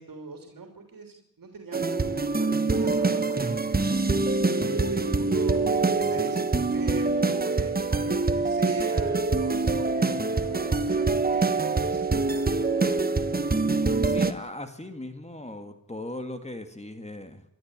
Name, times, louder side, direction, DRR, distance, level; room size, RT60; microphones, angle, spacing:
voice 1, 0.0-3.8 4.5-12.5, right 4 dB, 70° right, 4 dB, 3.2 m, -39 dB
sound 1, 1.7-14.3, right 3 dB, 25° right, 1.2 m, -25 dB
voice 2, 14.0-17.4, left 1 dB, 20° left, 8 dB, 1.9 m, -38 dB
28.0 x 12.0 x 8.9 m, 0.78 s
wide cardioid pair, 80°, 35 cm